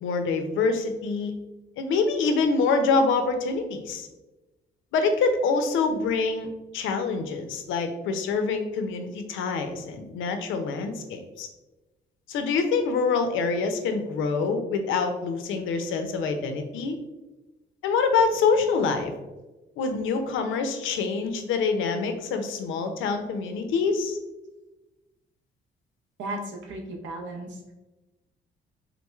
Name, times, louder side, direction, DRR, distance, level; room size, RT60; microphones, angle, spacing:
voice 1, 0.0-1.3 1.8-4.1 4.9-11.5 12.3-17.0 17.8-19.1 19.8-24.2, left 4 dB, 85° left, 7 dB, 0.5 m, -25 dB
voice 2, 26.2-27.6, right 1 dB, 70° right, 1 dB, 0.8 m, -35 dB
3.7 x 3.0 x 2.3 m, 1.1 s
cardioid pair, 90°, 20 cm